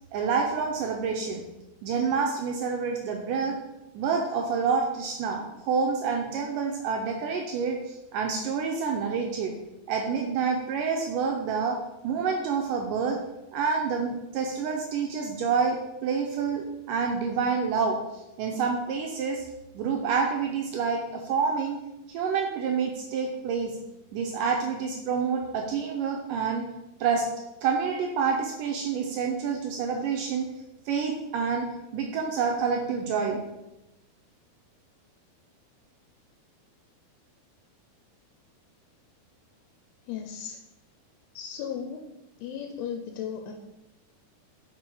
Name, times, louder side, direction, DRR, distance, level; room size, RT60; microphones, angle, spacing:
voice 1, 0.1-1.4 1.8-3.6 3.9-9.5 9.9-11.8 12.0-13.2 13.5-18.0 18.4-19.4 19.7-21.8 22.1-23.8 24.1-26.6 27.0-27.3 27.6-30.5 30.9-31.7 31.9-33.4, right 5 dB, 85° right, 2 dB, 1.9 m, -28 dB
voice 2, 40.1-40.6 41.4-42.1 42.4-43.5, left 8 dB, 90° left, 4 dB, 2.6 m, -35 dB
5.9 x 5.2 x 4.8 m, 0.96 s
omnidirectional pair, 4.4 m